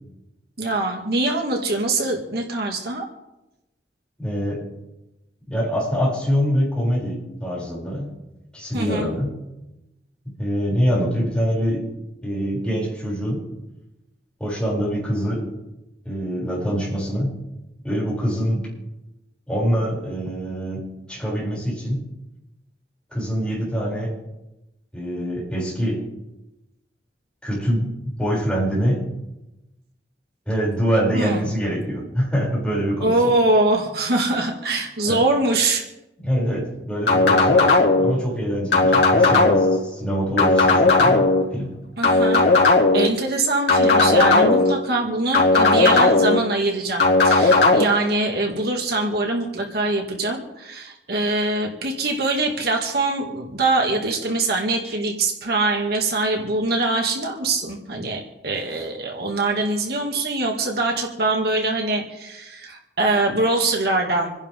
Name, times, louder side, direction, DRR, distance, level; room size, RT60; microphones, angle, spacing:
voice 1, 0.6-3.1 8.7-9.1 31.1-31.4 33.0-35.8 42.0-42.5 42.9-64.3, right 2 dB, 60° right, 1 dB, 2.1 m, -23 dB
voice 2, 4.2-4.7 5.5-8.1 8.5-9.4 10.2-11.9 12.2-13.5 14.4-15.5 16.1-17.4 17.8-18.7 19.5-22.0 23.1-24.2 24.9-26.0 27.4-29.1 30.5-33.1 35.1-35.2 36.2-41.7, equal, 5° left, -7 dB, 7.2 m, -24 dB
sound 1, 37.1-38.1 38.7-39.8 40.4-41.4 42.0-43.1 43.7-44.7 45.3-46.4 47.0-47.8, left 3 dB, 80° left, 2.9 m, -16 dB
27.5 x 11.0 x 3.8 m, 0.96 s
head